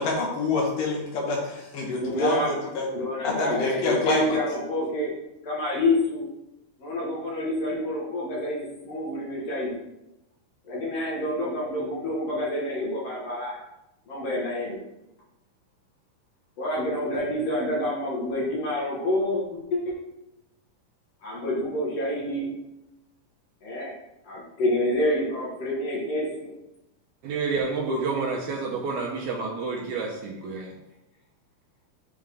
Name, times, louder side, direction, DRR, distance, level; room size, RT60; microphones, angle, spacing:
voice 1, 0.0-2.9 3.2-4.4, left 3 dB, 70° left, -1 dB, 2.7 m, -27 dB
voice 2, 2.0-5.1 5.4-6.2 6.8-9.7 10.7-13.6 14.1-14.8 16.6-20.0 21.2-22.5 23.6-23.9 24.3-26.5, left 1 dB, 55° left, -4 dB, 2.0 m, -28 dB
voice 3, 27.2-30.7, right 4 dB, 75° right, -1 dB, 1.8 m, -29 dB
8.7 x 3.6 x 3.4 m, 0.90 s
omnidirectional pair, 3.9 m